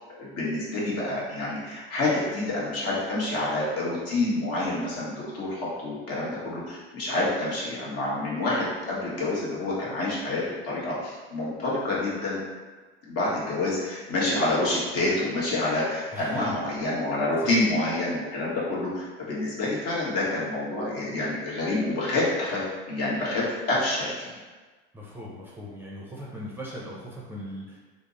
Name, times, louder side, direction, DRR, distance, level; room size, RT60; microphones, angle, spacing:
voice 1, 0.2-12.4 13.1-24.3, left 2 dB, 50° left, -6 dB, 1.4 m, -28 dB
voice 2, 16.1-16.6 17.4-17.7 24.9-27.9, equal, 5° right, -5 dB, 0.7 m, -39 dB
3.4 x 2.1 x 3.8 m, 1.3 s
hypercardioid pair, 85°, 31 cm